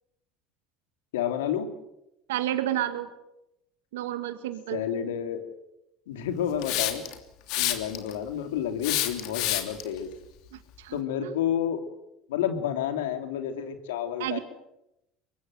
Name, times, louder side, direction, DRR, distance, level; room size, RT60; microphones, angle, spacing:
voice 1, 1.1-1.7 4.7-5.5 6.1-7.0 7.6-10.1 10.9-11.8 12.3-14.4, left 9 dB, 85° left, 7 dB, 2.9 m, -30 dB
voice 2, 2.3-3.1 3.9-4.8 10.5-11.4 14.2-14.4, right 13 dB, 85° right, 10 dB, 2.0 m, -31 dB
Hiss, 6.6-7.1 7.5-8.1 8.8-9.8, left 13 dB, 70° left, 3.1 m, -27 dB
24.0 x 22.0 x 7.8 m, 0.87 s
hypercardioid pair, 80°, 0 cm